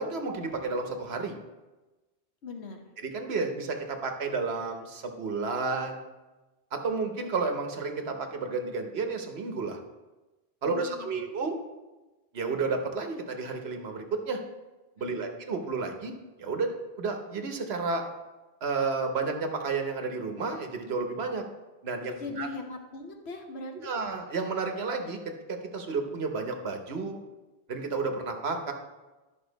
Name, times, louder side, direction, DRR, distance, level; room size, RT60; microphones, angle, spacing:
voice 1, 0.0-1.4 3.0-6.1 6.7-9.8 10.6-11.6 12.3-14.4 15.0-18.0 18.6-21.4 21.8-22.5 23.7-25.2 25.5-27.2 27.7-28.7, right 4 dB, 70° right, 4 dB, 1.3 m, -31 dB
voice 2, 2.4-2.8 10.6-11.3 15.1-15.3 22.2-23.9, left 3 dB, 75° left, 4 dB, 1.3 m, -40 dB
11.0 x 6.1 x 4.0 m, 1.1 s
omnidirectional pair, 1.1 m